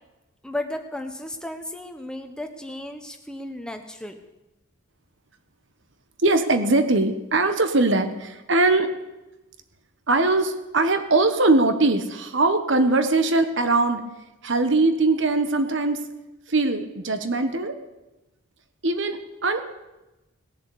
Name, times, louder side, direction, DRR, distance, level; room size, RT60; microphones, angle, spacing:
voice 1, 0.4-4.1, left 1 dB, 5° left, 5 dB, 1.1 m, -34 dB
voice 2, 6.2-8.9 10.1-14.0 14.4-16.0 16.5-17.8 18.8-19.6, right 2 dB, 65° right, 9 dB, 1.3 m, -21 dB
19.0 x 7.4 x 8.5 m, 1.0 s
head